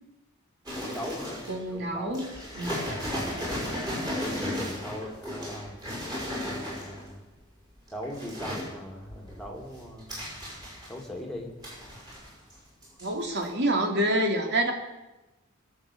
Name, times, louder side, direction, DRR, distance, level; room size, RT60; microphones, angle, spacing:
sound 1, 0.7-1.7 2.1-7.1 7.8-8.7 9.1-11.2 11.6-12.6 12.8-13.1 13.4-13.5, equal, 20° right, 6.6 m, -35 dB
voice 1, 0.8-2.3 2.7-3.3 4.0-5.8 6.4-7.3 7.9-10.2 10.9-11.5, left 1 dB, ahead, 0 dB, 2.6 m, -40 dB
voice 2, 1.5-2.2 2.5-2.9 13.0-14.7, right 1 dB, 55° right, 3 dB, 2.6 m, -27 dB
21.0 x 7.1 x 8.5 m, 1.0 s
head